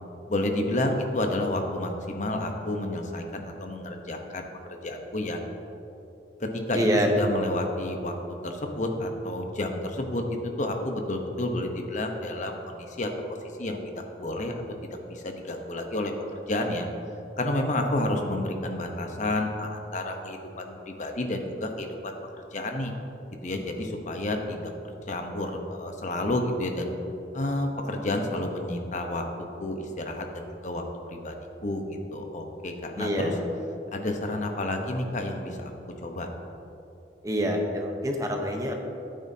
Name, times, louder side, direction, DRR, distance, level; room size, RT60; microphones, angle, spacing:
voice 1, 0.3-4.5 4.8-5.4 6.4-8.1 8.4-10.2 10.6-13.1 13.6-14.5 15.1-16.9 17.4-22.2 22.5-22.9 23.4-26.9 27.3-29.2 29.6-30.8 31.1-33.3 33.9-35.7 36.0-36.3, left 1 dB, 45° left, 3 dB, 0.9 m, -30 dB
voice 2, 6.7-7.6 33.0-33.5 37.2-38.7, equal, 20° right, 2 dB, 0.9 m, -26 dB
13.5 x 8.8 x 2.8 m, 2.8 s
head